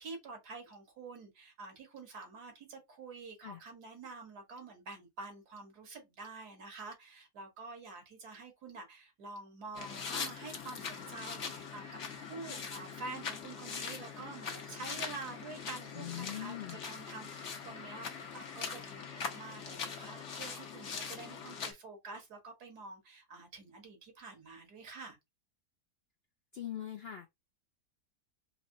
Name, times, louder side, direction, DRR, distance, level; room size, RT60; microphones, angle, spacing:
voice 1, 0.0-25.2, right 3 dB, 80° right, 2.0 m, -48 dB
sound 1, 9.7-21.7, left 6 dB, 55° left, 1.1 m, -42 dB
voice 2, 15.9-16.9 26.5-27.3, left 11 dB, 70° left, 0.6 m, -42 dB
4.2 x 2.9 x 2.7 m
omnidirectional pair, 1.6 m